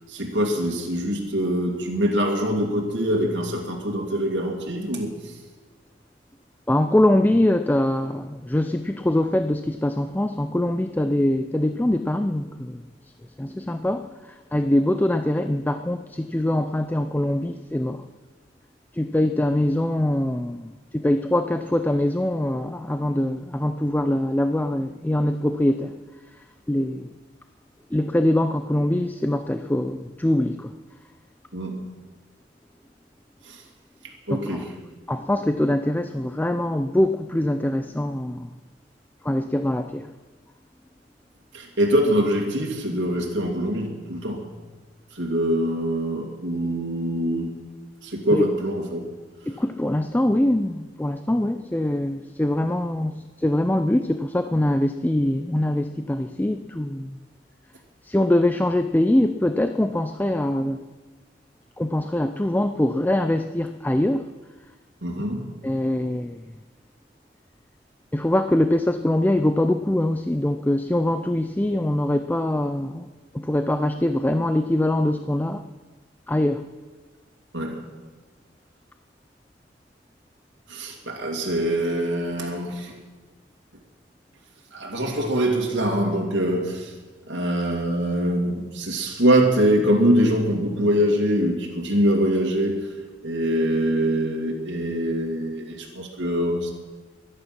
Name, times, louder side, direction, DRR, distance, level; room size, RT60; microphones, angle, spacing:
voice 1, 0.1-5.1 31.5-31.9 33.5-33.6 34.3-34.7 41.5-44.5 45.1-47.5 48.0-49.0 65.0-65.5 77.5-77.8 80.7-82.9 84.7-86.9 87.3-92.9 93.2-96.7, equal, 65° right, 0 dB, 2.4 m, -24 dB
voice 2, 6.7-12.8 13.4-18.0 18.9-26.0 26.7-27.1 27.9-30.7 34.3-34.6 35.1-38.5 39.2-40.1 48.3-48.5 49.5-57.2 58.0-60.9 61.8-64.3 65.6-66.5 68.1-73.1 73.3-75.7 76.3-76.7, left 1 dB, 10° left, 8 dB, 0.4 m, -23 dB
22.5 x 9.8 x 6.0 m, 1.3 s
head